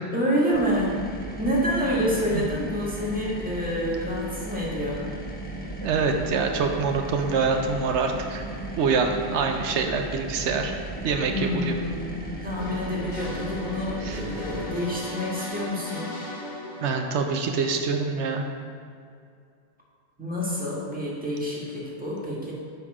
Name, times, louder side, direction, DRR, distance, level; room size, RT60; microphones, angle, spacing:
voice 1, 0.1-1.1 1.4-5.1 11.3-16.2 20.2-22.5, equal, 10° right, -6 dB, 1.5 m, -28 dB
sound 1, 0.5-14.7, right 1 dB, 10° left, 0.9 m, -36 dB
voice 2, 5.8-8.4 8.8-10.7 11.0-11.7 14.0-14.2 16.8-18.5, right 5 dB, 80° right, 4 dB, 0.9 m, -25 dB
sound 2, 12.6-18.3, left 2 dB, 75° left, 2.2 m, -38 dB
6.8 x 5.3 x 4.8 m, 2.3 s
omnidirectional pair, 1.1 m